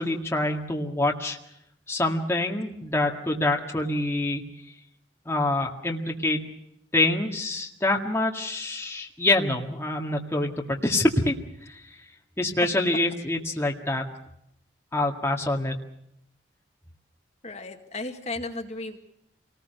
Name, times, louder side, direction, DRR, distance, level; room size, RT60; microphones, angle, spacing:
voice 1, 0.0-1.4 1.9-4.4 5.3-6.4 6.9-11.3 11.7-11.8 12.4-14.0 14.9-15.8, left 2 dB, 15° left, 0 dB, 1.9 m, -26 dB
voice 2, 17.4-19.0, left 2 dB, 40° left, 4 dB, 2.1 m, -34 dB
27.5 x 19.5 x 6.7 m, 0.76 s
head